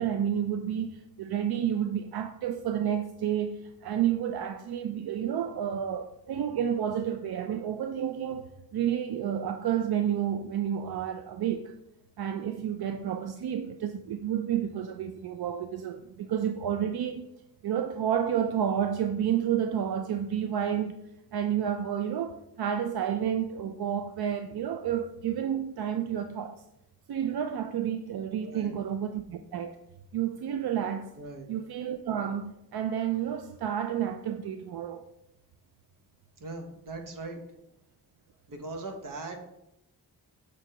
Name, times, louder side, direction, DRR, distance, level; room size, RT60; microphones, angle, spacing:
voice 1, 0.0-11.7 12.2-17.3 17.6-21.0 21.3-26.6 27.1-29.8 30.1-31.1 31.5-35.0, right 9 dB, 85° right, 0.5 m, -30 dB
voice 2, 28.4-28.8 31.2-31.5 36.4-37.4 38.5-39.4, right 2 dB, 60° right, 1.2 m, -39 dB
6.2 x 4.6 x 5.0 m
wide cardioid pair, 170°, 37 cm